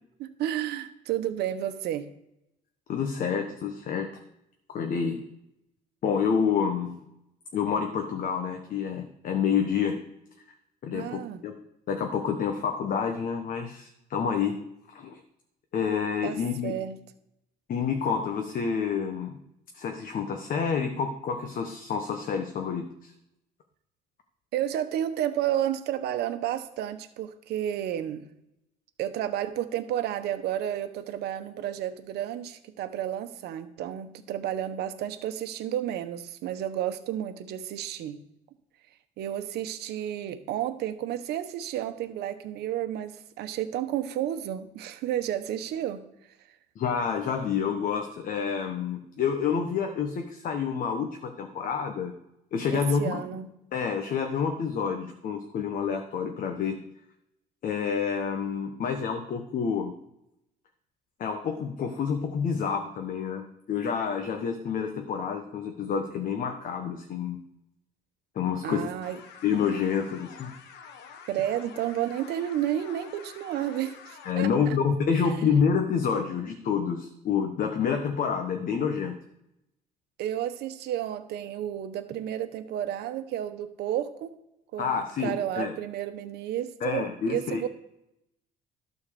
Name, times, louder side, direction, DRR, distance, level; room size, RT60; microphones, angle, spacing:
voice 1, 0.2-2.1 10.9-11.4 16.2-17.0 24.5-28.3 29.0-38.2 39.2-46.0 52.7-53.5 68.6-69.2 71.3-74.8 80.2-84.3 84.7-84.9 85.2-87.7, right 11 dB, 75° right, 9 dB, 1.1 m, -31 dB
voice 2, 2.9-4.2 4.7-5.2 6.0-7.1 7.5-10.0 10.8-11.5 11.9-14.6 14.9-15.2 15.7-16.7 17.7-19.4 19.7-23.1 46.8-52.1 52.5-53.2 53.7-56.8 57.6-59.9 61.2-67.4 68.3-68.9 69.4-70.5 74.2-79.2 84.8-85.7 86.8-87.7, left 6 dB, 55° left, 4 dB, 1.3 m, -28 dB
sound 1, 69.0-74.3, left 6 dB, 80° left, 1.2 m, -48 dB
12.0 x 4.5 x 7.0 m, 0.84 s
cardioid pair, 110°, 17 cm